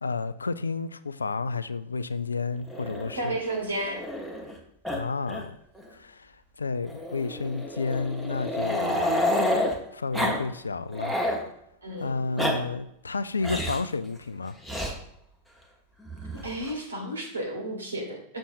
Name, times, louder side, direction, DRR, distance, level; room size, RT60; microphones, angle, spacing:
voice 1, 0.0-3.4 4.9-5.6 5.9-9.4 9.9-11.2 12.0-14.5, left 4 dB, 75° left, 0.3 m, -31 dB
Growling, 2.7-4.6 4.8-5.0 5.3-5.4 5.8-5.9 6.9-9.7 10.1-10.4 10.7-11.4 12.1-12.5 13.4-13.9 14.6-14.9 16.1-16.7, left 1 dB, ahead, 1.1 m, -29 dB
voice 2, 3.1-4.0 11.8-12.2 16.4-18.4, right 1 dB, 75° right, 1.7 m, -32 dB
6.9 x 6.3 x 2.6 m
figure-of-eight pair, 90°, 0 cm